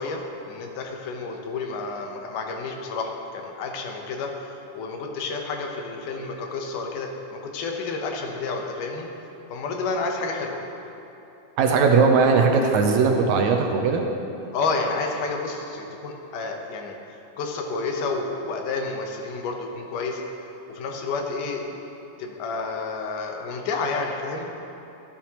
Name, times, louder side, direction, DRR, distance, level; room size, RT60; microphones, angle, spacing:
voice 1, 0.0-4.3 4.7-9.1 9.5-10.6 14.5-16.9 17.4-20.2 20.7-21.8 22.2-24.5, left 4 dB, 85° left, 2 dB, 2.5 m, -30 dB
voice 2, 11.6-14.0, right 5 dB, 75° right, 2 dB, 1.9 m, -19 dB
14.0 x 10.0 x 2.9 m, 3.0 s
omnidirectional pair, 3.6 m